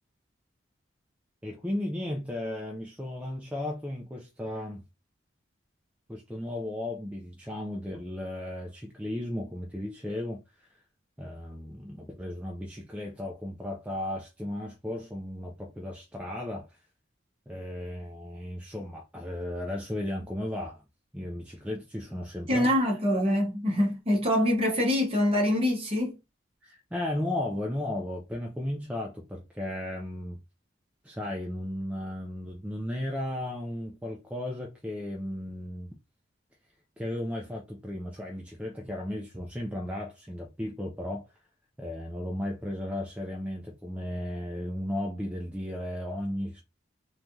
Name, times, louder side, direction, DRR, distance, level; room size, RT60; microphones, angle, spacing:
voice 1, 1.4-4.8 6.1-10.8 11.2-16.8 17.5-20.8 21.1-22.7 26.6-30.4 31.0-35.9 37.0-41.4 41.8-46.6, left 1 dB, 5° right, 0.4 m, -35 dB
voice 2, 22.5-26.1, left 1 dB, 30° right, 0.8 m, -25 dB
3.2 x 2.2 x 2.6 m
head